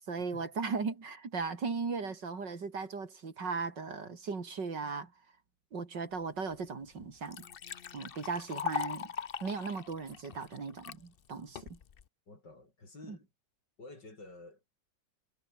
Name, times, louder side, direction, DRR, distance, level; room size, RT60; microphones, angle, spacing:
voice 1, 0.1-5.1 5.7-7.5 7.9-9.1 9.4-11.8 13.1-13.2, right 4 dB, 70° right, 3.6 m, -37 dB
Liquid, 6.5-6.6 7.0-11.0 11.6-12.0, left 8 dB, 50° left, 0.7 m, -40 dB
voice 2, 12.3-13.3 13.8-14.7, left 2 dB, 70° left, 7.0 m, -51 dB
omnidirectional pair, 2.0 m